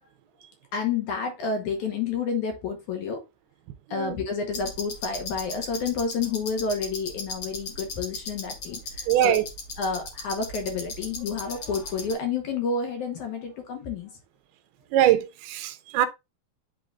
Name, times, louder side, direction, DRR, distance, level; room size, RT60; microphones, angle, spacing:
voice 1, 0.7-3.2 3.9-9.4 9.8-14.1, left 5 dB, 70° left, 1.9 m, -30 dB
sound 1, 4.5-12.1, left 3 dB, 85° left, 1.1 m, -37 dB
voice 2, 9.1-9.5 14.9-16.1, right 12 dB, 80° right, 2.4 m, -22 dB
10.5 x 3.8 x 2.4 m
omnidirectional pair, 4.8 m